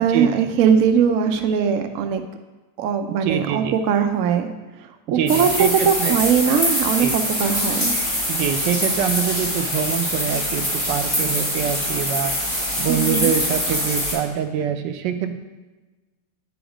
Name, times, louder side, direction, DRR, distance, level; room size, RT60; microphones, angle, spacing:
voice 1, 0.0-2.2 2.8-4.5 5.1-7.9 12.9-13.3, right 7 dB, 65° right, 6 dB, 0.9 m, -20 dB
voice 2, 3.2-3.8 5.1-6.2 7.0-7.2 8.3-12.3 12.8-15.4, right 8 dB, 80° right, 8 dB, 1.3 m, -25 dB
sound 1, 5.3-14.1, equal, 15° left, 3.1 m, -24 dB
8.9 x 5.0 x 5.0 m, 1.2 s
omnidirectional pair, 1.9 m